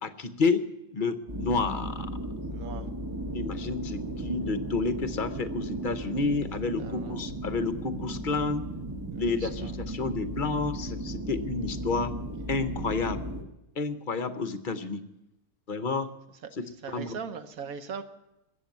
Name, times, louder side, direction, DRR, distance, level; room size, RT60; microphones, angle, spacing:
voice 1, 0.0-0.6 0.9-2.1 3.3-8.7 9.2-12.1 12.5-13.2 13.8-15.0 15.7-16.1 16.6-17.2, left 4 dB, 45° left, 11 dB, 0.7 m, -30 dB
sound 1, 1.3-13.4, right 1 dB, 15° right, 1.0 m, -36 dB
voice 2, 2.5-2.9 6.8-7.2 9.1-9.7 16.8-18.0, right 6 dB, 70° right, 10 dB, 1.4 m, -40 dB
14.5 x 8.5 x 9.2 m, 0.91 s
omnidirectional pair, 1.6 m